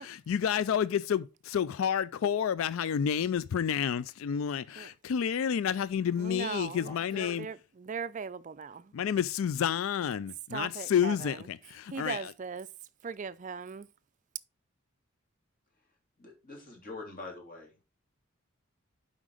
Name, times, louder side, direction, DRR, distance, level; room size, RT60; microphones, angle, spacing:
voice 1, 0.0-7.5 8.9-12.3, left 8 dB, 70° left, 0.3 m, -30 dB
voice 2, 6.2-8.9 10.5-11.4 11.9-12.7 13.0-13.9, right 5 dB, 35° right, 0.4 m, -39 dB
voice 3, 6.8-7.4 16.2-17.8, left 3 dB, 40° left, 3.0 m, -44 dB
7.5 x 5.1 x 4.9 m
head